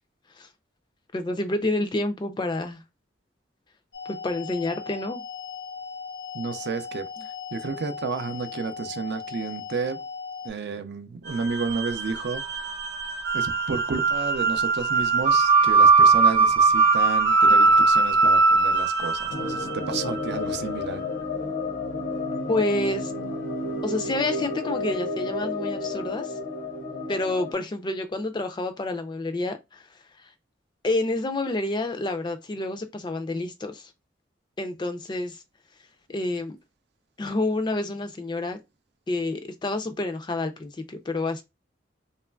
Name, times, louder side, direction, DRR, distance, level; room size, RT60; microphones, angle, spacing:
voice 1, 1.1-2.8 4.2-5.2 22.5-23.1 23.8-26.3 27.1-29.8 30.8-33.9 34.6-35.4 36.1-36.6 37.2-38.6 39.1-41.4, left 2 dB, 25° left, 0.4 m, -28 dB
sound 1, 3.9-10.5, left 6 dB, 85° left, 0.9 m, -38 dB
voice 2, 6.3-7.1 7.5-10.0 10.4-12.7 13.3-21.0, right 5 dB, 60° right, 0.4 m, -31 dB
sound 2, 11.2-20.4, right 4 dB, 45° right, 0.8 m, -20 dB
sound 3, 19.3-27.5, left 2 dB, 65° left, 0.6 m, -31 dB
3.0 x 2.3 x 2.2 m
head